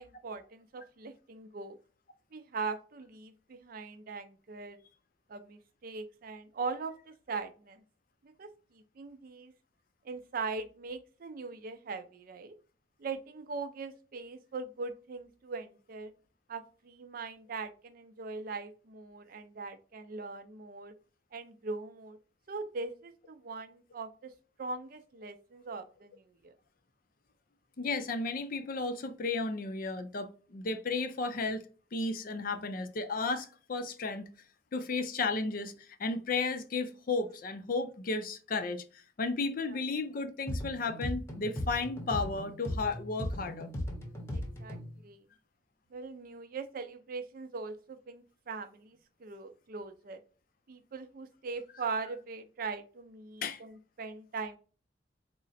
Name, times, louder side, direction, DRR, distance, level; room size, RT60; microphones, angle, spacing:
voice 1, 0.0-1.8 2.3-4.8 5.3-7.8 8.2-9.5 10.0-12.6 13.0-16.1 16.5-20.9 21.3-22.2 22.5-24.3 24.6-26.5 39.7-39.8 44.3-44.8 45.0-45.2 45.9-50.2 50.7-54.6, right 4 dB, 50° right, 0.4 m, -41 dB
voice 2, 27.8-31.6 31.9-34.3 34.7-43.7 53.4-53.6, left 3 dB, 50° left, 0.5 m, -34 dB
sound 1, 40.5-45.0, left 1 dB, 15° left, 0.8 m, -38 dB
3.7 x 2.1 x 4.0 m
head